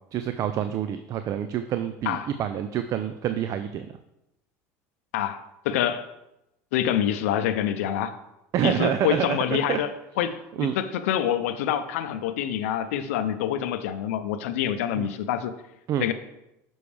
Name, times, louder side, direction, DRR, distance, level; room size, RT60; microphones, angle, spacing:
voice 1, 0.1-3.9 8.5-9.8 10.6-10.8 15.0-15.1 15.9-16.1, right 9 dB, 50° right, 10 dB, 0.4 m, -27 dB
voice 2, 5.1-6.1 6.7-8.2 8.6-9.9 10.2-15.5 16.0-16.1, left 10 dB, 85° left, 11 dB, 0.5 m, -26 dB
6.9 x 6.1 x 3.3 m, 0.88 s
supercardioid pair, 100°, 7 cm